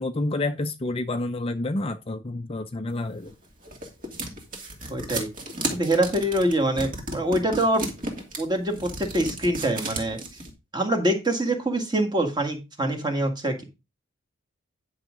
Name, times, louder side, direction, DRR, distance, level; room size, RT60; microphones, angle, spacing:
voice 1, 0.0-3.3, left 2 dB, 25° left, 0.5 m, -29 dB
sound 1, 3.2-10.5, right 2 dB, 40° right, 2.6 m, -33 dB
voice 2, 4.9-5.3 5.7-7.8 8.4-10.2 10.7-13.6, right 1 dB, 20° right, 1.8 m, -24 dB
10.5 x 6.3 x 3.8 m
head